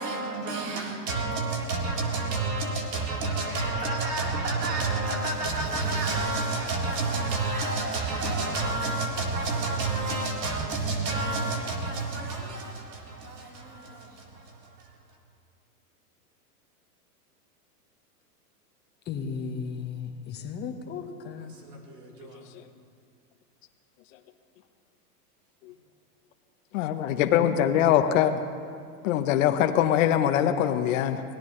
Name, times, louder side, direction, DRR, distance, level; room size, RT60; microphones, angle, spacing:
voice 1, 0.0-14.9 21.5-22.5, right 3 dB, 85° right, 4.2 m, -30 dB
voice 2, 19.1-21.6, left 5 dB, 20° left, 1.3 m, -35 dB
voice 3, 26.7-28.4 29.0-31.2, left 10 dB, 55° left, 1.1 m, -23 dB
24.5 x 17.5 x 3.3 m
hypercardioid pair, 140°, 47 cm